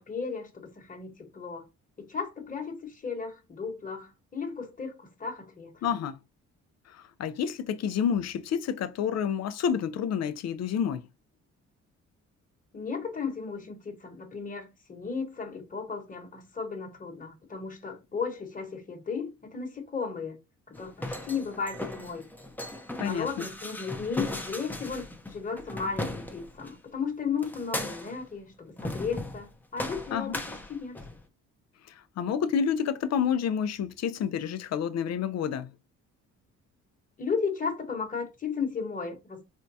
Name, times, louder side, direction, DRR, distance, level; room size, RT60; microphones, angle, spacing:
voice 1, 0.0-1.7 2.0-5.9 12.7-20.4 20.7-22.3 23.0-30.4 30.7-31.0 37.2-39.4, left 5 dB, 25° left, 1.2 m, -35 dB
voice 2, 5.8-6.2 6.9-11.0 23.0-23.3 30.1-30.3 31.9-35.7, left 8 dB, 60° left, 0.5 m, -29 dB
sound 1, 20.7-26.7 27.4-28.3 28.8-29.5 29.8-31.2, left 1 dB, 5° left, 0.6 m, -37 dB
4.4 x 2.2 x 2.6 m
cardioid pair, 90°, 30 cm